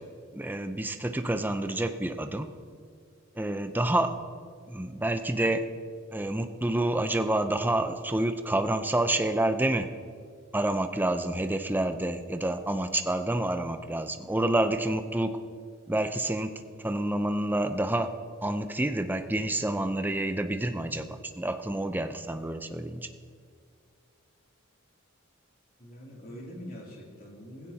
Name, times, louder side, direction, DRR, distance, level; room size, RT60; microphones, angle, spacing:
voice 1, 0.3-2.5 3.4-4.1 4.7-5.6 6.1-9.9 10.5-15.3 15.9-16.5 16.8-18.1 18.4-23.1, right 1 dB, 10° right, 8 dB, 0.6 m, -28 dB
voice 2, 25.8-27.7, equal, 45° left, -3 dB, 3.1 m, -44 dB
17.5 x 16.0 x 2.9 m, 2.1 s
head